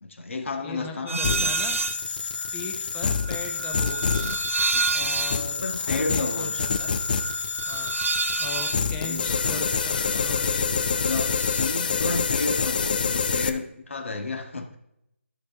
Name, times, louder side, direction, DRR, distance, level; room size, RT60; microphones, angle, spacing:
voice 1, 0.0-1.2 4.7-6.7 9.0-9.6 10.1-10.2 10.9-14.8, left 3 dB, 65° left, 4 dB, 1.6 m, -32 dB
voice 2, 0.6-1.8 2.5-4.2 4.9-6.9 7.7-7.9 8.4-10.9, left 4 dB, 15° left, 5 dB, 0.9 m, -39 dB
sound 1, 1.1-2.0 2.3-10.5 10.8-11.8, right 4 dB, 75° right, 0.7 m, -30 dB
sound 2, 1.2-13.5, left 6 dB, 40° left, 0.6 m, -27 dB
13.0 x 6.7 x 3.5 m, 0.80 s
figure-of-eight pair, 155°, 7 cm